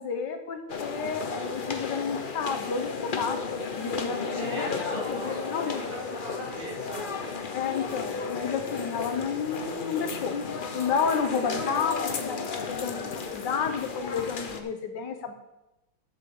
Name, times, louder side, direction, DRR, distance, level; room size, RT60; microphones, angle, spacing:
voice 1, 0.0-3.5 3.8-5.8 7.5-10.4 10.7-15.3, left 6 dB, 65° left, 6 dB, 1.5 m, -31 dB
sound 1, 0.7-14.6, left 4 dB, 85° left, 0.4 m, -33 dB
voice 2, 4.4-7.2, equal, 80° right, -5 dB, 4.4 m, -39 dB
7.6 x 7.0 x 6.9 m, 0.93 s
omnidirectional pair, 2.2 m